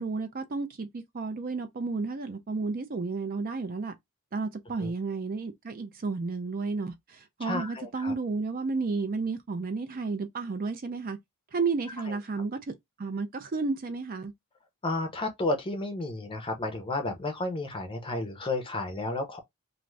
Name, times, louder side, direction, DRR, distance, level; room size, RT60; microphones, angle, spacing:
voice 1, 0.0-3.9 4.3-11.2 11.5-14.3, right 4 dB, 40° right, 0.4 m, -32 dB
voice 2, 7.4-8.1 14.8-19.4, left 2 dB, 25° left, 0.6 m, -32 dB
2.5 x 2.3 x 3.1 m
head